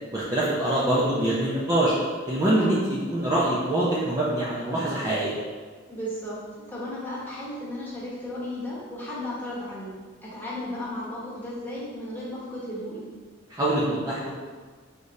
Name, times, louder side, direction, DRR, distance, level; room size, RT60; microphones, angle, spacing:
voice 1, 0.1-1.9 2.3-5.3 13.5-14.3, right 1 dB, 20° right, -8 dB, 0.5 m, -24 dB
voice 2, 5.9-6.4 6.7-9.9 10.2-13.0, left 1 dB, 10° left, -8 dB, 1.1 m, -34 dB
5.0 x 3.2 x 2.7 m, 1.5 s
head